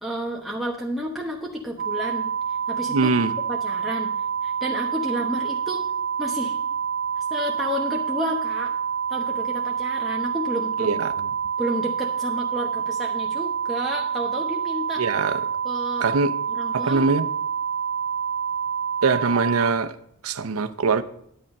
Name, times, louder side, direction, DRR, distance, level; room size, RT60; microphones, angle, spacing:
voice 1, 0.0-2.3 2.7-3.1 3.5-4.1 4.4-5.9 6.2-6.6 7.2-8.7 9.1-11.0 11.6-15.0 15.6-16.1 16.5-17.0, equal, ahead, 1.1 m, -31 dB
sound 1, 1.8-19.7, right 7 dB, 45° right, 0.3 m, -27 dB
voice 2, 2.9-3.3 10.8-11.1 15.0-15.4 16.0-16.3 16.7-17.3 19.0-19.9 20.2-21.0, right 4 dB, 85° right, 0.6 m, -22 dB
10.0 x 8.6 x 5.3 m
head